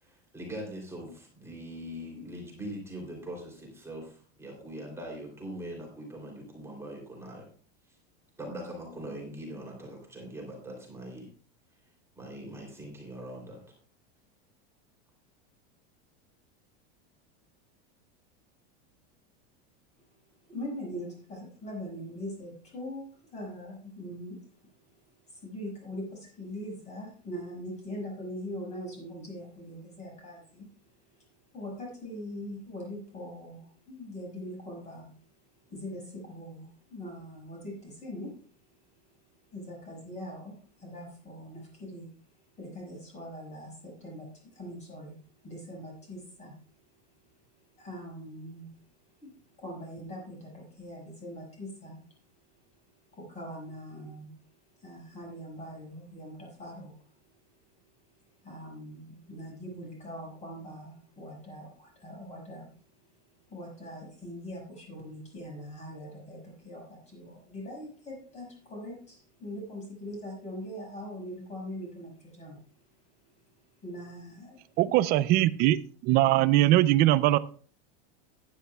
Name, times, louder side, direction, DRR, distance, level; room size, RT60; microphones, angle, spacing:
voice 1, 0.0-7.5 8.4-11.3 12.2-13.6, right 1 dB, 10° right, -1 dB, 3.1 m, -42 dB
voice 2, 20.5-24.4 25.3-30.7 31.2-31.3 31.5-35.1 35.7-38.3 39.5-42.1 42.6-45.2 45.4-46.5 47.8-48.8 49.2-52.0 53.1-54.3 54.8-56.9 58.4-62.7 63.5-72.6 73.8-74.6 74.9-75.0, equal, 20° left, -2 dB, 5.7 m, -42 dB
voice 3, 74.8-75.8 76.0-77.4, right 15 dB, 30° right, 16 dB, 0.4 m, -21 dB
14.5 x 10.5 x 2.3 m, 0.43 s
supercardioid pair, 155°, 32 cm